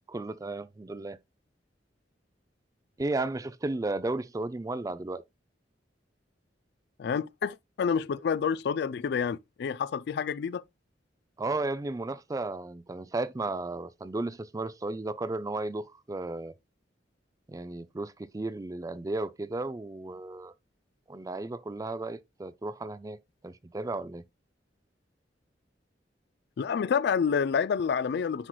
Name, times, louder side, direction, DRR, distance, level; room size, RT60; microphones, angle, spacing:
voice 1, 0.1-1.2 3.0-5.2 11.4-16.5 17.5-20.5 21.1-24.2, right 2 dB, 20° right, 0.4 m, -34 dB
voice 2, 7.0-10.6 26.6-28.5, left 6 dB, 60° left, 0.3 m, -28 dB
10.0 x 4.5 x 2.2 m
head